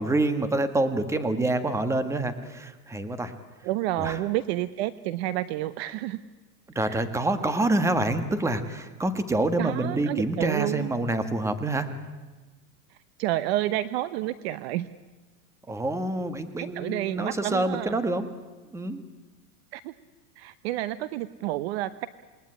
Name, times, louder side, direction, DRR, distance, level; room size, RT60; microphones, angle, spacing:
voice 1, 0.0-3.3 4.0-4.2 6.7-11.9 15.7-18.3 18.7-19.0, right 2 dB, 5° right, 10 dB, 1.4 m, -27 dB
voice 2, 3.6-6.2 6.8-7.0 9.6-10.9 12.9-14.9 16.6-18.0 19.7-19.9 20.4-22.1, right 15 dB, 40° right, 15 dB, 0.8 m, -30 dB
28.0 x 20.5 x 9.8 m, 1.3 s
supercardioid pair, 150°, 47 cm